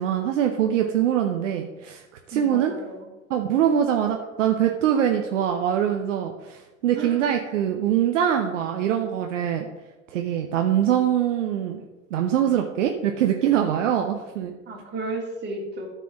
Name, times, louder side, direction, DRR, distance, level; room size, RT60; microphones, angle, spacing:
voice 1, 0.0-2.7 3.3-9.7 10.1-11.8 12.1-14.5, right 10 dB, 60° right, 4 dB, 0.9 m, -23 dB
voice 2, 2.3-3.1 6.9-7.2 14.7-15.9, right 2 dB, 25° right, -1 dB, 2.9 m, -33 dB
12.5 x 4.7 x 5.9 m, 1.1 s
figure-of-eight pair, 80°, 41 cm